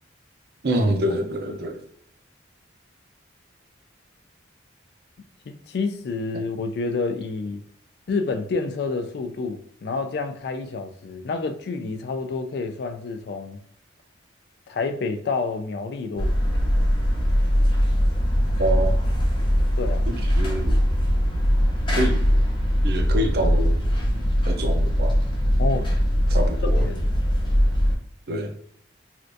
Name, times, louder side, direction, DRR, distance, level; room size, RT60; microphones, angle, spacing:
voice 1, 0.6-1.8 18.6-18.9 20.4-20.8 22.0-22.3 22.8-23.8 24.4-25.2 26.3-26.9 28.3-28.5, right 1 dB, 55° right, 0.5 m, -26 dB
voice 2, 5.5-7.6 8.1-13.6 14.7-16.4 19.8-20.1 25.6-25.9 26.8-27.0 28.3-28.5, left 4 dB, 55° left, 0.3 m, -29 dB
sound 1, 16.2-27.9, equal, 25° left, 0.7 m, -21 dB
3.3 x 2.5 x 2.5 m
head